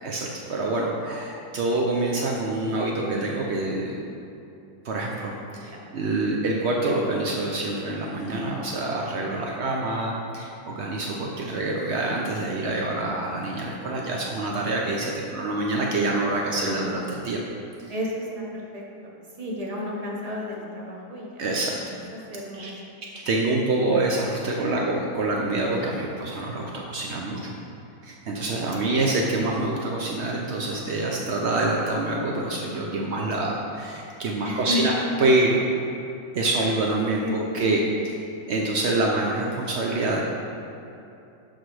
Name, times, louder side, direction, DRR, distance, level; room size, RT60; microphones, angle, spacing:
voice 1, 0.0-4.0 4.8-17.4 17.9-18.0 21.4-21.7 22.5-22.7 23.1-27.6 28.0-35.6 36.3-40.2, right 2 dB, 75° right, -1 dB, 0.6 m, -26 dB
voice 2, 5.5-5.9 17.9-18.3 18.5-19.1 19.4-21.9 22.3-22.7 24.6-24.9 28.8-29.1 34.4-34.9 37.2-37.6, left 1 dB, 25° right, -3 dB, 1.0 m, -33 dB
12.0 x 4.4 x 4.8 m, 2.8 s
omnidirectional pair, 2.1 m